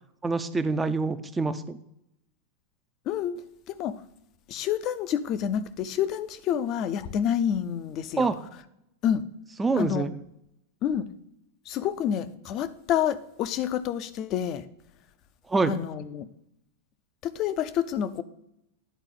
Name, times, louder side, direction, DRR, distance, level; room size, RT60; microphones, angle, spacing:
voice 1, 0.2-1.8 8.2-8.4 9.6-10.1 15.5-15.7, right 3 dB, 15° right, 10 dB, 0.5 m, -25 dB
voice 2, 3.1-3.4 3.7-4.0 4.5-8.3 9.0-9.2 9.8-10.1 10.8-11.1 11.7-14.6 15.7-16.3 17.2-18.2, left 9 dB, 45° left, 12 dB, 0.5 m, -28 dB
10.0 x 4.0 x 3.8 m, 0.82 s
hypercardioid pair, 100°, 0 cm